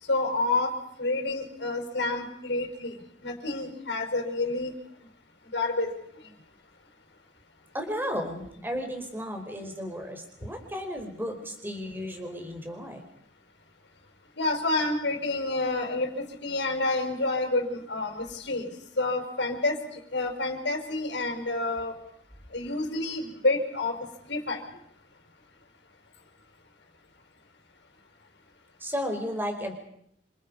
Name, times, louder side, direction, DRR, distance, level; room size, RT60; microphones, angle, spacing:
voice 1, 0.1-2.9 3.2-4.7 5.5-5.9 6.2-6.3 14.4-18.7 19.0-19.8 20.1-22.0 22.5-24.0 24.3-24.6, left 2 dB, 75° left, 3 dB, 5.0 m, -28 dB
voice 2, 7.7-13.0 28.8-29.7, equal, 10° right, 4 dB, 4.8 m, -34 dB
28.5 x 27.0 x 5.4 m, 0.71 s
head